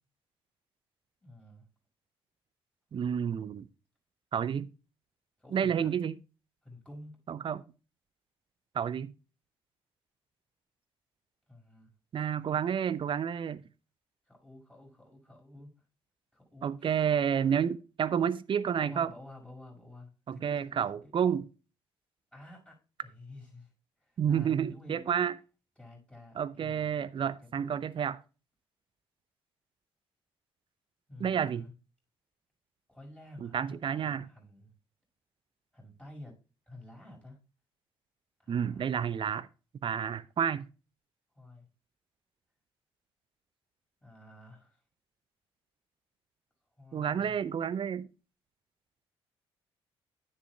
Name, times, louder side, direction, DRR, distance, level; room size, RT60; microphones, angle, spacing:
voice 1, 1.2-1.7 5.4-5.9 6.6-7.2 11.5-11.9 14.3-15.7 16.3-17.2 18.8-21.1 22.3-23.7 24.0-25.0 25.8-27.1 27.4-27.8 31.1-31.7 32.9-34.8 35.7-36.4 36.7-37.4 38.4-38.9 41.3-41.7 44.0-44.8 46.8-47.4, left 1 dB, 10° left, 5.6 m, -51 dB
voice 2, 2.9-3.7 4.3-4.7 5.5-6.2 7.3-7.6 8.7-9.1 12.1-13.6 16.6-19.1 20.3-21.4 24.2-25.3 26.4-28.2 31.2-31.6 33.4-34.3 38.5-39.5 39.8-40.7 46.9-48.1, right 8 dB, 40° right, 0.6 m, -30 dB
10.0 x 9.9 x 2.3 m
figure-of-eight pair, 40°, 14 cm